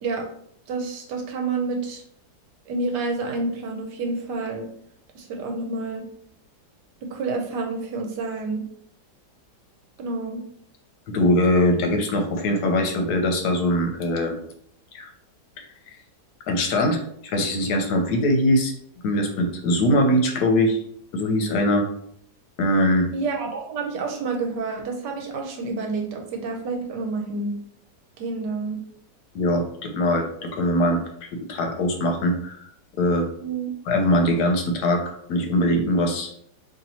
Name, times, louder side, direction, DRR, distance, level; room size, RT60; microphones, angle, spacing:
voice 1, 0.7-2.0 2.7-4.7 5.1-6.1 7.0-8.6 10.0-10.4 23.1-27.5 28.2-28.8 33.4-33.7, right 3 dB, 80° right, 2 dB, 1.4 m, -29 dB
voice 2, 11.1-14.4 14.9-15.1 15.6-16.0 16.5-18.7 19.0-20.8 21.1-21.9 22.6-23.1 29.3-32.7 33.0-33.3 33.9-36.4, left 1 dB, 70° left, 3 dB, 1.1 m, -22 dB
3.0 x 2.8 x 4.1 m, 0.67 s
omnidirectional pair, 1.8 m